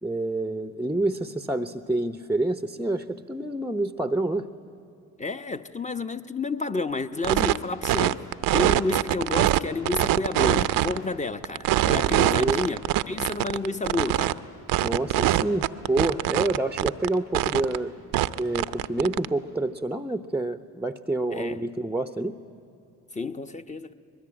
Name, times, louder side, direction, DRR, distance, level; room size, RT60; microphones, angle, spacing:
voice 1, 0.0-4.5 12.2-12.6 14.8-22.3, right 2 dB, 5° right, 0.8 m, -28 dB
voice 2, 5.2-8.2 8.5-12.8 13.1-14.4 21.3-21.6 23.1-23.9, left 3 dB, 20° left, 1.0 m, -30 dB
sound 1, 7.2-7.6 7.8-9.6 9.9-11.0 11.4-14.3 14.7-17.1 17.3-17.8 18.1-19.3, right 14 dB, 60° right, 0.8 m, -23 dB
24.5 x 21.0 x 8.9 m
hypercardioid pair, 55°, 39 cm